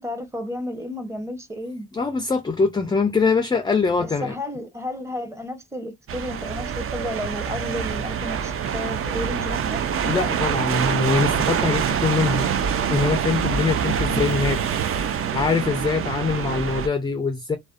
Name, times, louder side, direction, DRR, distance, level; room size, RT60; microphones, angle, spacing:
voice 1, 0.0-1.9 4.0-9.8 12.2-12.4 14.1-14.3, left 1 dB, 10° right, 0.8 m, -32 dB
voice 2, 1.9-4.3 10.0-12.5 12.9-14.8 15.3-17.6, left 4 dB, 15° left, 0.4 m, -23 dB
sound 1, 6.1-16.9, right 7 dB, 45° right, 0.5 m, -25 dB
2.5 x 2.1 x 2.3 m
cardioid pair, 90°, 30 cm